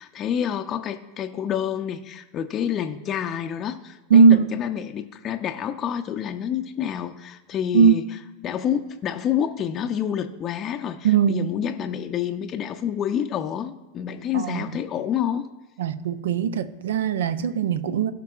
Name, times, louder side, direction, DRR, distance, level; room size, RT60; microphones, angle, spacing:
voice 1, 0.0-8.0 8.4-15.5, left 9 dB, 35° left, 0.5 m, -28 dB
voice 2, 4.1-4.5 7.7-8.0 11.0-11.5 14.3-14.7 15.8-18.1, right 7 dB, 70° right, 0.5 m, -19 dB
17.0 x 5.8 x 2.4 m
figure-of-eight pair, 90°, 0 cm